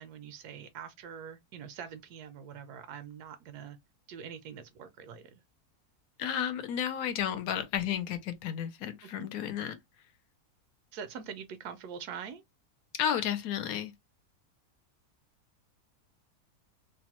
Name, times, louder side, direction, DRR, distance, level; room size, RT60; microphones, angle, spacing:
voice 1, 0.0-3.8 4.1-5.4 9.2-9.3 10.9-12.4, right 7 dB, 85° right, 1.1 m, -44 dB
voice 2, 6.2-9.8 13.0-13.9, left 9 dB, 70° left, 1.0 m, -32 dB
3.0 x 2.1 x 2.9 m
omnidirectional pair, 1.6 m